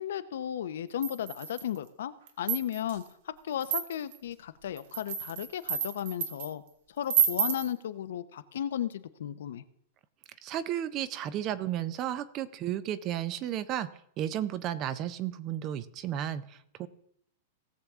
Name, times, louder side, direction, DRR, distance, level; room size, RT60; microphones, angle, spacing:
voice 1, 0.0-6.6 7.0-9.6, left 10 dB, 75° left, 12 dB, 0.7 m, -35 dB
sound 1, 1.0-1.8 2.3-3.0 3.6-4.2 4.8-6.5 7.1-7.7, right 8 dB, 60° right, 1.3 m, -30 dB
voice 2, 10.4-16.9, right 11 dB, 30° right, 16 dB, 0.5 m, -33 dB
18.0 x 7.0 x 3.6 m, 0.71 s
supercardioid pair, 160°, 0 cm